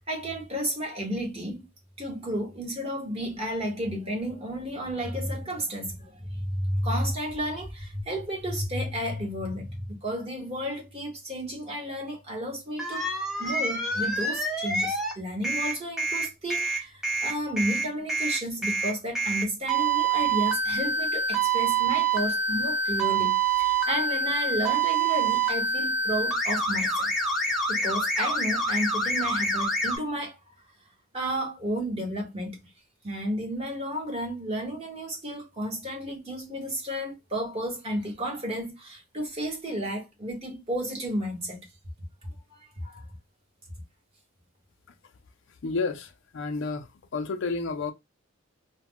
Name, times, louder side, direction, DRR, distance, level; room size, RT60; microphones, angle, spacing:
voice 1, 0.1-1.6 2.0-27.1 27.7-30.4 31.1-32.6 33.0-41.7 42.5-43.0, equal, 25° right, 1.0 m, -32 dB
sound 1, 12.8-15.1 15.4-30.0, right 3 dB, ahead, 0.5 m, -26 dB
voice 2, 45.6-47.9, left 4 dB, 55° left, 0.4 m, -31 dB
2.2 x 2.1 x 3.6 m
head